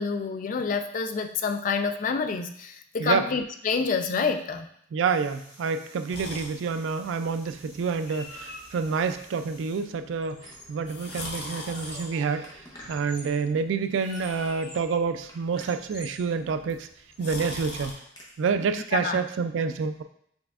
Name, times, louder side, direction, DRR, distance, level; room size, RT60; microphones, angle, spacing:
voice 1, 0.0-4.7 18.9-19.2, left 5 dB, 45° left, 8 dB, 0.3 m, -27 dB
voice 2, 4.9-12.5 12.9-16.9 17.2-17.9 18.4-20.0, right 5 dB, 85° right, 9 dB, 0.3 m, -28 dB
sound 1, 5.0-10.0 11.1-14.0, equal, 5° right, 1.3 m, -52 dB
sound 2, 6.1-17.9, left 2 dB, 60° left, 0.9 m, -44 dB
Squeak, 9.0-9.3 9.6-10.9 11.2-13.4 13.9-14.9 15.3-16.2 16.7-18.3, left 1 dB, 20° left, 0.8 m, -48 dB
5.3 x 3.5 x 2.4 m, 0.69 s
head